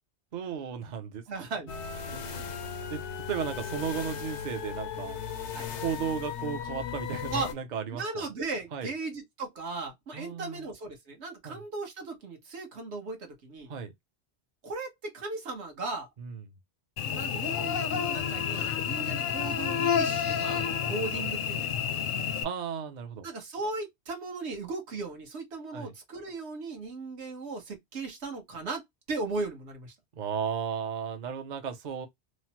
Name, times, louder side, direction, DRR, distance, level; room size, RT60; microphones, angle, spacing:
voice 1, 0.3-1.2 2.1-2.5 2.9-3.0 3.3-5.2 5.8-8.2 8.7-8.9 10.1-10.6 11.4-11.6 13.7-13.9 16.2-16.4 19.0-19.1 22.4-23.3 25.7-25.9 30.2-32.1, right 7 dB, 50° right, 0.7 m, -35 dB
voice 2, 1.3-1.7 2.1-2.5 5.5-5.7 7.3-7.5 7.9-13.7 14.6-16.1 17.0-21.9 23.2-28.8 29.1-29.9, right 3 dB, 75° right, 1.2 m, -37 dB
sound 1, 1.7-7.5, left 7 dB, 85° left, 0.9 m, -37 dB
Cricket / Buzz, 17.0-22.4, left 7 dB, 60° left, 0.6 m, -29 dB
3.1 x 2.0 x 2.8 m
omnidirectional pair, 1.1 m